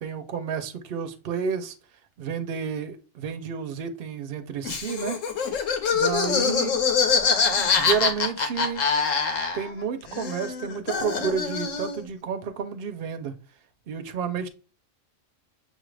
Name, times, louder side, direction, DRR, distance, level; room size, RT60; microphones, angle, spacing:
voice 1, 0.0-1.7 2.2-5.2 5.9-6.8 7.6-8.8 9.5-13.3 13.9-14.5, right 6 dB, 55° right, 0.8 m, -30 dB
Laughter, 4.6-9.8 10.1-12.0, left 5 dB, 85° left, 1.2 m, -24 dB
6.8 x 2.5 x 3.2 m
omnidirectional pair, 1.3 m